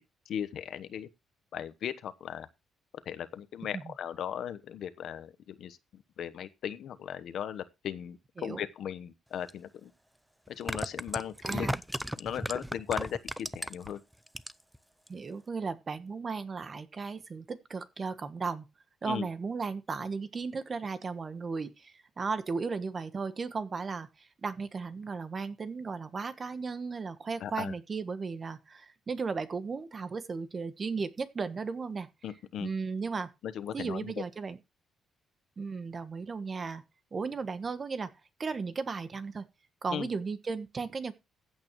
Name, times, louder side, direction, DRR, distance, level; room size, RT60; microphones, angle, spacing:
voice 1, 0.3-1.1 1.5-2.5 3.1-9.9 10.5-11.7 12.2-14.0 19.0-19.3 27.4-27.7 32.2-32.7 33.4-34.1 39.9-40.1, left 9 dB, 65° left, 1.1 m, -37 dB
sound 1, 9.5-9.6 10.5-13.9 14.3-14.8 15.1-15.2, equal, 5° right, 0.6 m, -35 dB
voice 2, 11.4-11.8 15.1-18.6 19.0-32.1 32.6-33.3 33.7-34.6 35.6-36.8 37.1-38.1 38.4-39.4 39.8-41.1, right 4 dB, 35° right, 1.3 m, -35 dB
15.0 x 8.7 x 3.2 m
cardioid pair, 120°, 0 cm